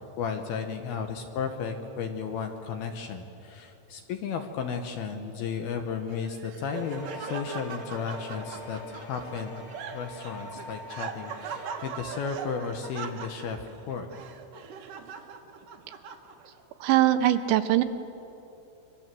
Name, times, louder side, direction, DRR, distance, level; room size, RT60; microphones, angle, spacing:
voice 1, 0.2-9.6 9.9-14.1, left 6 dB, 70° left, 5 dB, 2.6 m, -34 dB
Laughter, 6.1-16.6, right 6 dB, 65° right, 2.2 m, -41 dB
sound 1, 6.7-13.6, left 2 dB, 45° left, 2.4 m, -45 dB
voice 2, 16.8-17.8, right 13 dB, 80° right, 9 dB, 3.0 m, -21 dB
26.5 x 23.5 x 7.7 m, 2.9 s
omnidirectional pair, 5.5 m